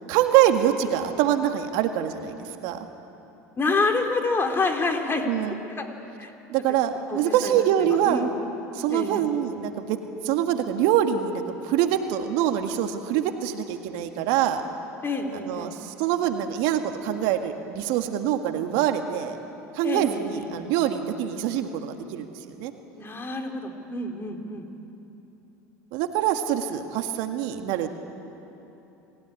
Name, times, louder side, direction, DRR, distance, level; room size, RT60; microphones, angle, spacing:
voice 1, 0.1-2.8 5.3-5.6 6.5-8.2 8.7-10.0 10.2-14.6 15.3-19.4 19.7-22.3 22.6-22.7 25.9-28.0, right 10 dB, 65° right, 6 dB, 1.9 m, -25 dB
voice 2, 3.6-5.3 5.8-5.9 6.2-6.3 7.1-7.6 8.0-8.3 8.9-9.2 15.0-15.7 19.8-20.5 23.0-24.6, left 3 dB, 25° left, 4 dB, 3.4 m, -27 dB
27.5 x 16.5 x 9.9 m, 3.0 s
hypercardioid pair, 80°, 9 cm